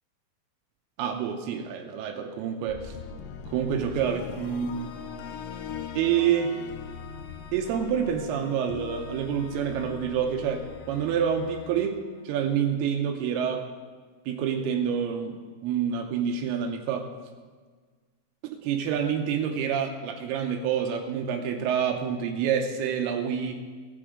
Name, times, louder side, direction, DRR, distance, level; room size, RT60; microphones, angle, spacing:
voice 1, 1.0-2.9 3.5-4.9 6.0-6.5 7.5-12.0 12.2-13.7 14.3-15.4 15.6-17.1 18.4-23.6, right 8 dB, 90° right, 3 dB, 2.7 m, -27 dB
sound 1, 2.7-12.9, left 6 dB, 90° left, 2.0 m, -40 dB
13.5 x 7.0 x 4.9 m, 1.5 s
omnidirectional pair, 4.5 m